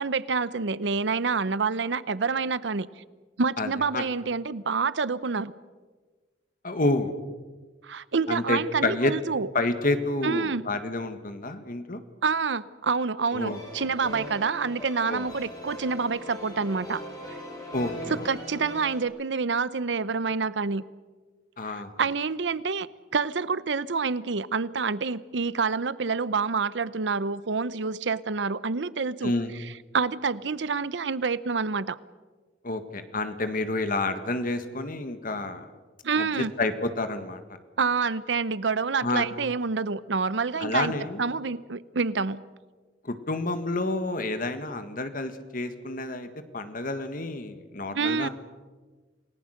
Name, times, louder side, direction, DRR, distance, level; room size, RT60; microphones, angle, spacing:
voice 1, 0.0-2.9 3.4-5.5 7.8-9.5 10.2-10.6 12.2-17.0 18.1-20.8 21.6-22.9 23.1-29.3 29.9-32.0 36.0-36.5 37.8-40.9 41.2-42.4 47.9-48.3, right 5 dB, 80° right, 17 dB, 0.7 m, -27 dB
voice 2, 3.6-4.0 6.6-7.1 8.3-9.1 9.5-12.0 13.3-13.9 15.1-15.3 17.7-18.3 21.6-21.9 29.2-29.5 32.6-35.7 36.2-37.4 39.0-39.3 40.6-41.2 43.0-46.3 46.5-48.3, left 2 dB, 50° left, 9 dB, 1.8 m, -29 dB
sound 1, 13.4-19.0, equal, 20° left, 6.1 m, -40 dB
28.0 x 18.5 x 6.6 m, 1.3 s
head